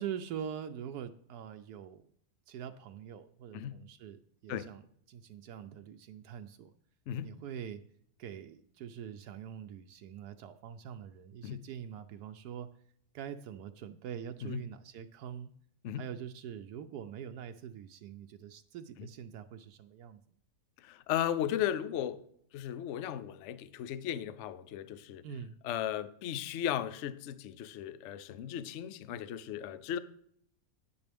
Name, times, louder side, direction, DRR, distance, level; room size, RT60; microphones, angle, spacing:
voice 1, 0.0-2.0 2.5-6.7 7.2-7.8 8.2-12.7 13.1-15.5 16.0-20.2 25.2-25.5, right 8 dB, 85° right, 1.1 m, -44 dB
voice 2, 20.8-22.2 22.5-25.2 25.6-30.0, left 10 dB, 65° left, 0.8 m, -36 dB
9.9 x 9.7 x 3.4 m
omnidirectional pair, 1.6 m